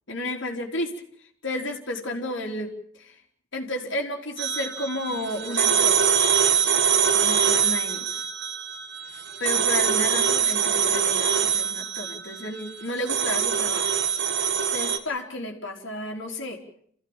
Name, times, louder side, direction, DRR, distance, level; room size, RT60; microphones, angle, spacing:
voice 1, 0.1-0.9 1.4-3.2 3.5-6.0 7.1-8.3 9.4-13.9 14.7-16.6, left 1 dB, 60° left, 1 dB, 4.1 m, -32 dB
sound 1, 4.4-15.0, right 7 dB, 55° right, 1.7 m, -24 dB
28.5 x 16.0 x 9.0 m, 0.64 s
head